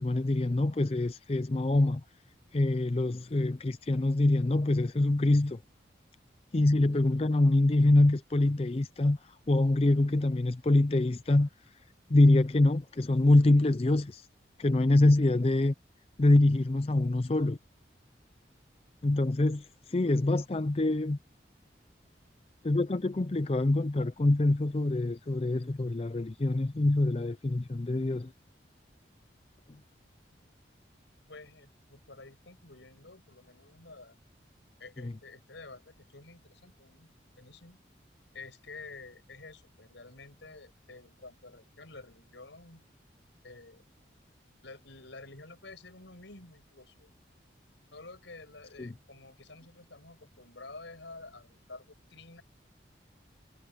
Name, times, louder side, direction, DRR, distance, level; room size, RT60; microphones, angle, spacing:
voice 1, 0.0-2.0 2.5-5.6 6.5-11.5 12.1-14.3 14.6-15.7 16.2-17.6 19.0-21.2 22.6-28.3 35.0-35.1 48.8-48.9, left 2 dB, 30° left, 0.5 m, -25 dB
voice 2, 31.3-34.2 34.8-37.8 38.3-42.9 43.4-43.8 44.6-47.1 47.9-52.4, left 3 dB, 85° left, 5.7 m, -50 dB
head